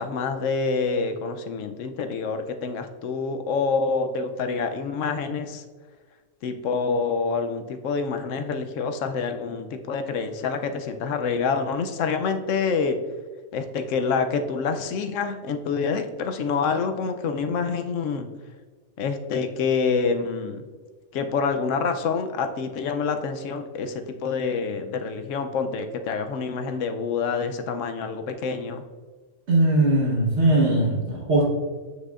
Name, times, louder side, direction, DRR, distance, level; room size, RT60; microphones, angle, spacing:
voice 1, 0.0-5.6 6.4-13.0 13.5-18.3 19.0-20.6 21.1-28.8, left 5 dB, 65° left, 7 dB, 0.9 m, -27 dB
voice 2, 29.5-31.5, right 2 dB, 50° right, -3 dB, 1.5 m, -20 dB
7.5 x 6.4 x 2.4 m, 1.4 s
omnidirectional pair, 1.5 m